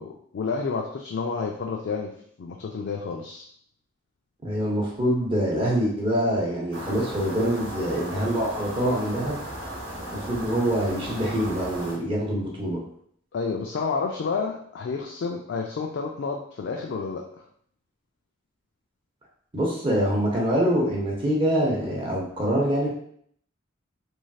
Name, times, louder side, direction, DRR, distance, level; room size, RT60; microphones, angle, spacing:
voice 1, 0.0-2.1 2.4-3.4 13.3-17.2, left 4 dB, 60° left, 1 dB, 0.3 m, -30 dB
voice 2, 4.4-9.4 10.1-12.8 19.5-22.9, equal, 25° right, -3 dB, 0.8 m, -25 dB
sound 1, 6.7-12.0, right 1 dB, 75° right, 1.0 m, -36 dB
3.2 x 2.6 x 2.3 m, 0.63 s
head